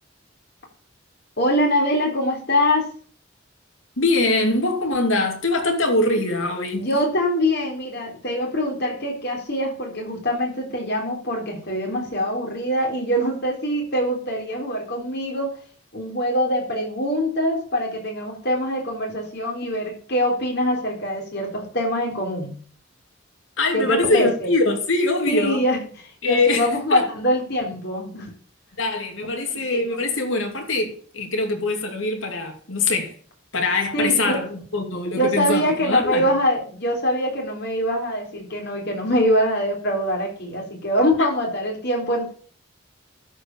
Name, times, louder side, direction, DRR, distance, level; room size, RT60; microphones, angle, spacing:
voice 1, 1.4-2.9 6.8-15.5 15.9-22.6 23.7-24.5 25.3-28.3 29.7-29.8 33.9-34.4 35.1-42.3, equal, 55° left, 4.0 m, -23 dB
voice 2, 4.0-7.0 23.6-25.6 26.2-27.1 28.8-33.1 33.5-36.3, left 2 dB, 75° left, 2.6 m, -23 dB
12.5 x 5.1 x 6.8 m
head